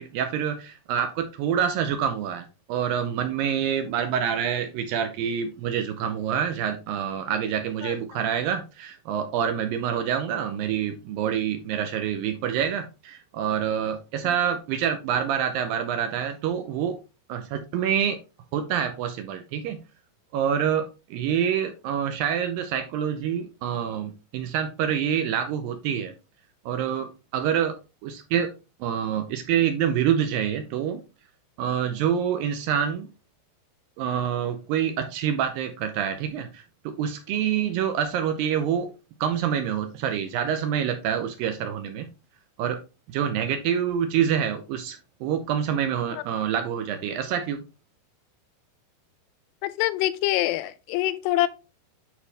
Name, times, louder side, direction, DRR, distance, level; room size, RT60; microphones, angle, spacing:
voice 1, 0.0-17.0 17.3-18.2 18.5-19.8 20.3-26.1 26.7-27.8 28.0-28.5 28.8-31.0 31.6-33.1 34.0-38.9 39.2-42.1 42.6-42.8 43.1-47.6, right 8 dB, 80° right, 2.1 m, -26 dB
voice 2, 49.6-51.5, left 15 dB, 85° left, 2.7 m, -25 dB
8.9 x 4.7 x 3.3 m
omnidirectional pair, 4.8 m